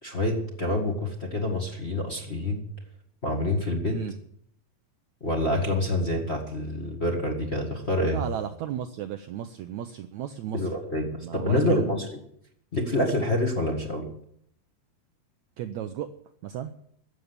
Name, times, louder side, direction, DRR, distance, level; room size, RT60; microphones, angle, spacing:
voice 1, 0.0-2.6 3.2-4.0 5.2-8.2 10.5-12.2 12.7-14.1, left 1 dB, 25° left, 0 dB, 1.4 m, -27 dB
voice 2, 8.1-10.6 11.2-11.9 15.6-16.1 16.4-16.7, right 10 dB, 80° right, 8 dB, 1.6 m, -34 dB
14.0 x 8.0 x 9.6 m, 0.69 s
omnidirectional pair, 4.1 m